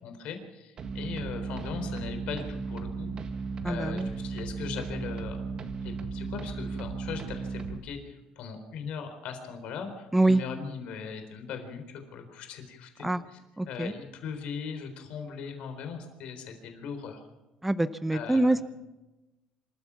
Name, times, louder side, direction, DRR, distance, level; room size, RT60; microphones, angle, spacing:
voice 1, 0.0-3.1 3.6-5.4 5.8-13.4 13.7-17.2 18.1-18.5, left 6 dB, 65° left, 6 dB, 4.0 m, -39 dB
sound 1, 0.8-7.8, right 4 dB, 40° right, 1.7 m, -35 dB
voice 2, 3.6-4.1 10.1-10.4 13.0-13.2 13.6-13.9 17.6-18.6, right 2 dB, 5° right, 12 dB, 0.6 m, -25 dB
26.5 x 14.0 x 7.1 m, 1.0 s
cardioid pair, 140°, 2 cm